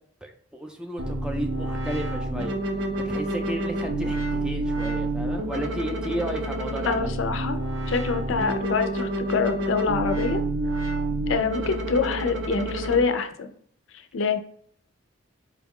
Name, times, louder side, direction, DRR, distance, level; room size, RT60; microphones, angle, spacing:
voice 1, 0.2-2.6 3.0-7.1 11.6-11.7, right 1 dB, 5° right, 3 dB, 0.4 m, -33 dB
sound 1, 1.0-13.0, right 1 dB, 70° right, 0.7 m, -28 dB
voice 2, 6.8-7.6 7.9-10.4 11.3-13.5 13.9-14.4, left 5 dB, 75° left, 7 dB, 0.4 m, -25 dB
4.6 x 2.3 x 3.6 m, 0.62 s
head